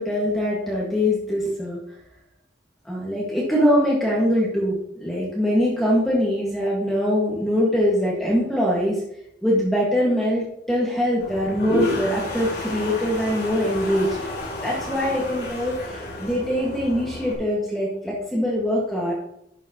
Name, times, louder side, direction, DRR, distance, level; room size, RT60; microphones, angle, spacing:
voice 1, 0.0-1.8 2.8-9.0 9.4-14.2 14.6-19.1, equal, ahead, -5 dB, 1.7 m, -23 dB
Toilet flush, 11.2-17.3, left 2 dB, 65° left, 2.7 m, -31 dB
11.5 x 7.1 x 2.9 m, 0.77 s
head